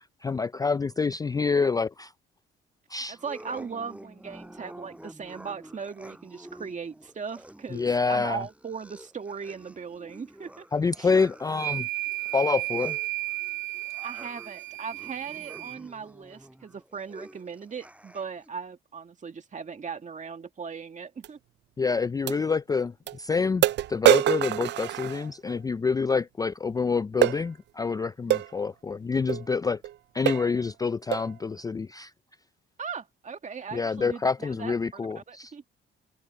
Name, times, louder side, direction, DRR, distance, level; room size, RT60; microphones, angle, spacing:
voice 1, 0.0-2.1 2.9-3.2 7.7-8.4 10.7-11.9 12.3-13.0 21.8-29.8 30.1-32.1 33.7-35.5, left 5 dB, 20° left, 0.3 m, -27 dB
sound 1, 3.1-18.5, right 1 dB, 5° right, 5.4 m, -49 dB
voice 2, 3.1-10.7 11.0-11.1 14.0-21.4 32.8-35.6, right 6 dB, 40° right, 2.0 m, -38 dB
sound 2, 11.5-15.8, right 22 dB, 80° right, 2.1 m, -33 dB
sound 3, 21.2-21.3 22.3-22.4 23.1-23.2 23.6-25.6 27.2-27.4 28.3-28.5 29.3-29.4 29.8-30.0 30.3-30.6 31.1-31.3, right 14 dB, 65° right, 0.4 m, -24 dB
cardioid pair, 90°, 20 cm